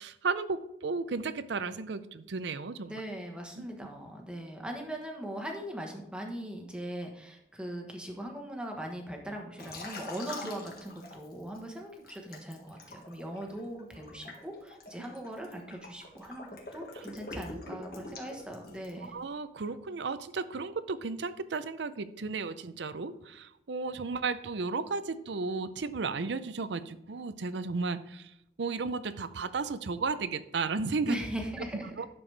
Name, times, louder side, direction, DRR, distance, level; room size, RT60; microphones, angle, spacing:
voice 1, 0.0-3.0 3.6-3.7 15.5-15.6 17.0-17.1 17.7-17.8 19.1-28.3 28.6-31.2 32.0-32.1, right 4 dB, 75° right, 13 dB, 0.5 m, -34 dB
voice 2, 2.9-19.1 31.0-32.1, right 1 dB, 5° right, 1 dB, 1.1 m, -40 dB
Liquid, 9.6-11.6 12.1-19.1, left 2 dB, 55° left, 1.7 m, -45 dB
11.0 x 6.8 x 3.3 m, 0.79 s
head